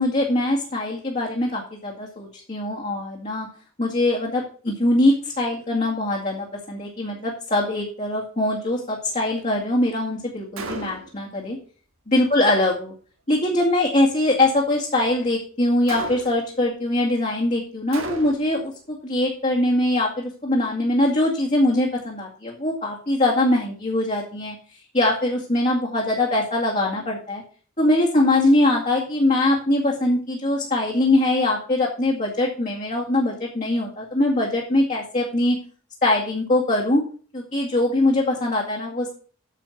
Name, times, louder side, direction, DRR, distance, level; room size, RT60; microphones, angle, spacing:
voice 1, 0.0-3.5 3.8-11.6 12.1-12.9 13.3-24.6 24.9-27.4 27.8-35.6 36.0-37.0 37.3-39.1, left 1 dB, 35° left, -3 dB, 2.3 m, -22 dB
Gunshot gunfire, 10.6-11.2 15.9-16.6 17.9-18.6, right 3 dB, 80° right, 2.5 m, -34 dB
9.3 x 7.6 x 5.9 m, 0.43 s
head